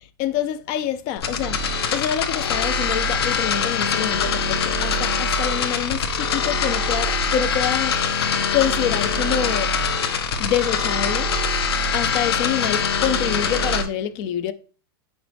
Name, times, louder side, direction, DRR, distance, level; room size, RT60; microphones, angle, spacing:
voice 1, 0.2-8.2 8.5-9.8 10.4-11.3 11.9-14.5, left 10 dB, 30° left, 0.4 m, -26 dB
sound 1, 1.2-13.8, left 4 dB, 80° left, 1.2 m, -23 dB
8.5 x 6.0 x 3.4 m
supercardioid pair, 170°, 13 cm